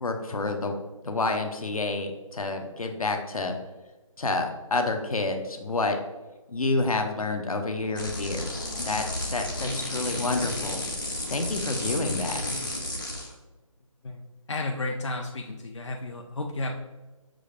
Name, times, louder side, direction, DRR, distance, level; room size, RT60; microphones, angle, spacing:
voice 1, 0.0-0.7 1.0-3.6 4.2-6.0 6.5-10.8 11.3-12.5, left 3 dB, 80° left, 4 dB, 0.8 m, -29 dB
sound 1, 7.9-13.3, left 1 dB, 35° left, 0.8 m, -32 dB
voice 2, 14.0-16.7, left 2 dB, 55° left, 2 dB, 0.4 m, -33 dB
6.0 x 2.5 x 3.3 m, 1.2 s
figure-of-eight pair, 180°, 18 cm